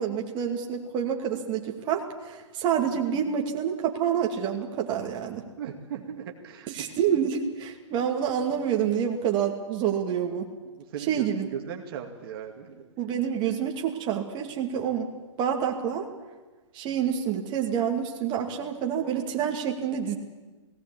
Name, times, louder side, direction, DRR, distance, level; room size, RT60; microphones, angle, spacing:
voice 1, 0.0-5.4 6.7-10.5 11.1-11.5 13.0-15.1 15.4-16.1 16.7-20.2, right 8 dB, 30° right, 1 dB, 2.4 m, -28 dB
voice 2, 5.6-6.9 10.7-12.9, right 8 dB, 50° right, 2 dB, 2.3 m, -38 dB
18.5 x 18.0 x 8.6 m, 1.2 s
figure-of-eight pair, 120°, 16 cm